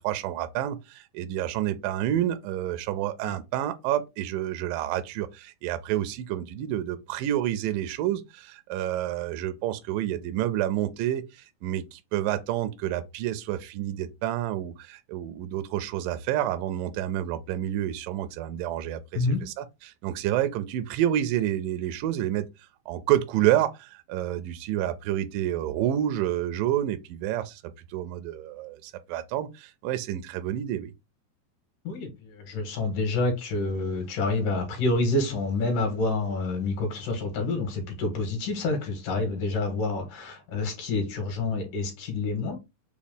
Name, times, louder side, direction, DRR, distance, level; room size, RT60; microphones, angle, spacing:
voice 1, 0.0-22.5 22.9-30.9, right 12 dB, 85° right, 2.0 m, -29 dB
voice 2, 31.8-42.6, left 3 dB, 65° left, 2.6 m, -28 dB
6.0 x 2.3 x 3.5 m
omnidirectional pair, 4.4 m